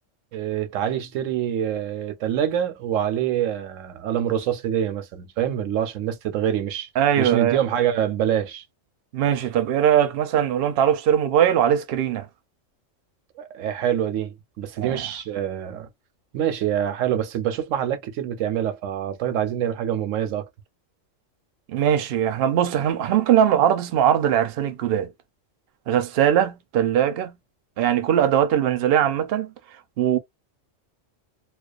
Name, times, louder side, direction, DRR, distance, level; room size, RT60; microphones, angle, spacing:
voice 1, 0.3-6.9 7.2-8.6 13.4-15.9 16.3-20.5, right 10 dB, 85° right, 1.0 m, -25 dB
voice 2, 7.0-7.6 9.1-12.3 14.8-15.1 21.7-25.1 25.9-27.4 27.8-29.5 30.0-30.2, right 10 dB, 60° right, 0.7 m, -20 dB
2.4 x 2.2 x 2.3 m
omnidirectional pair, 1.3 m